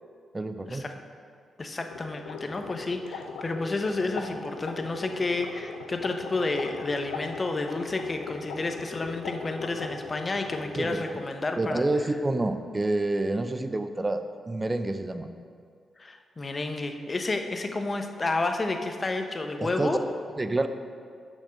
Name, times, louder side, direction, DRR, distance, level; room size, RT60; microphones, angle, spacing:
voice 1, 0.3-0.8 10.8-11.0 11.6-15.3 19.6-20.1 20.4-20.7, right 2 dB, 30° right, 9 dB, 0.6 m, -28 dB
voice 2, 1.6-11.8 16.0-20.0, left 2 dB, 40° left, 5 dB, 0.9 m, -30 dB
sound 1, 1.9-11.3, left 4 dB, 85° left, 0.7 m, -39 dB
6.9 x 5.4 x 6.4 m, 2.2 s
supercardioid pair, 45°, 0 cm